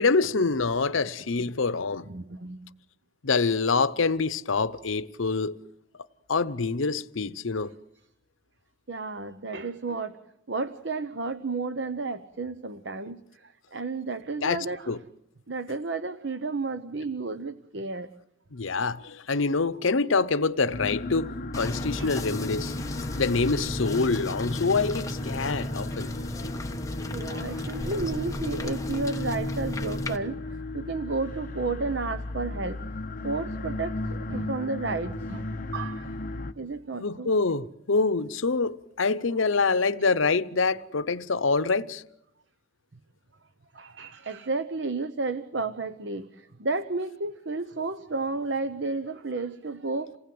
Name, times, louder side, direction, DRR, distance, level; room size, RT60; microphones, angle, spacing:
voice 1, 0.0-2.1 3.2-5.6 6.3-7.7 14.4-15.0 18.5-22.7 23.1-26.1 37.0-42.0, left 4 dB, 80° left, 0.8 m, -26 dB
voice 2, 2.1-2.6 8.9-10.2 10.5-14.9 15.5-18.1 22.0-22.1 26.4-26.5 27.1-32.8 33.2-36.1 36.5-37.3 43.7-50.2, right 3 dB, 60° right, 0.9 m, -32 dB
sound 1, 20.7-36.5, left 2 dB, 45° left, 1.0 m, -35 dB
sound 2, 21.5-30.2, left 1 dB, 15° left, 1.2 m, -34 dB
28.0 x 19.0 x 7.8 m
head